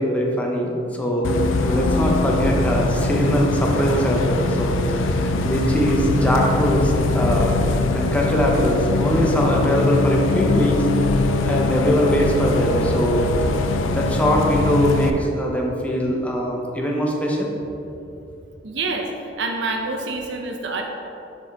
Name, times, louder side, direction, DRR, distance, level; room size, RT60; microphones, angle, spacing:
voice 1, 0.0-1.3 1.6-7.6 7.9-10.8 11.4-13.3 13.9-17.5, equal, 5° left, -1 dB, 0.6 m, -22 dB
Bus, 1.2-15.1, left 3 dB, 85° left, 0.4 m, -22 dB
voice 2, 18.6-20.8, right 3 dB, 65° right, 2 dB, 0.7 m, -27 dB
6.3 x 5.1 x 3.5 m, 2.9 s
head